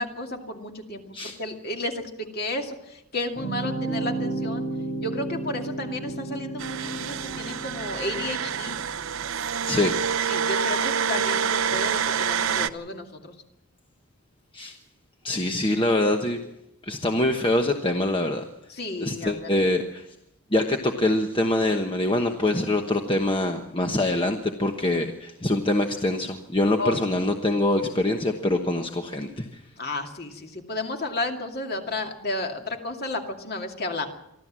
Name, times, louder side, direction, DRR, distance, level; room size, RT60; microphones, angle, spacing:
voice 1, 0.0-4.6 5.0-8.8 10.3-13.3 18.7-19.6 26.8-27.0 29.8-34.1, left 2 dB, 45° left, 3 dB, 2.4 m, -32 dB
sound 1, 3.3-8.8, right 2 dB, 70° left, 5.2 m, -32 dB
sound 2, 6.6-12.7, right 7 dB, 65° right, 0.7 m, -27 dB
voice 2, 9.7-10.0 14.5-14.8 15.2-16.4 16.8-18.5 19.0-20.1 20.5-29.6, left 1 dB, 25° left, 4 dB, 1.1 m, -24 dB
24.0 x 14.0 x 7.5 m, 0.87 s
head